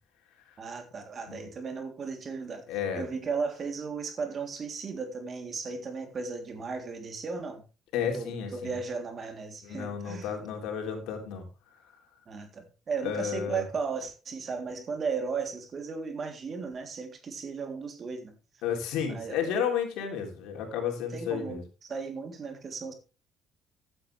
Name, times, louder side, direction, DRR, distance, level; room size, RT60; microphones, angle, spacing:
voice 1, 0.6-2.6 2.9-7.6 8.1-10.3 12.3-18.3 19.1-19.7 21.1-22.9, right 5 dB, 45° right, 5 dB, 3.5 m, -35 dB
voice 2, 2.7-3.1 7.9-8.7 9.6-11.5 11.7-12.0 13.0-13.6 18.6-21.6, left 7 dB, 70° left, 3 dB, 3.6 m, -32 dB
15.0 x 9.9 x 3.5 m, 0.32 s
hypercardioid pair, 55°, 0 cm